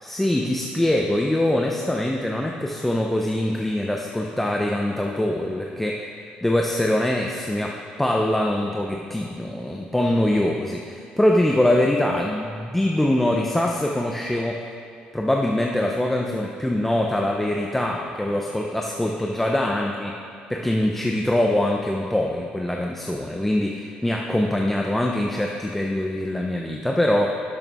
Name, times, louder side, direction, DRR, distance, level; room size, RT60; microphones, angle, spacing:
voice 1, 0.0-6.1 6.4-14.6 15.1-20.2 20.5-27.4, left 1 dB, 5° left, 0 dB, 0.6 m, -23 dB
12.0 x 6.7 x 3.5 m, 2.3 s
cardioid pair, 115°, 3 cm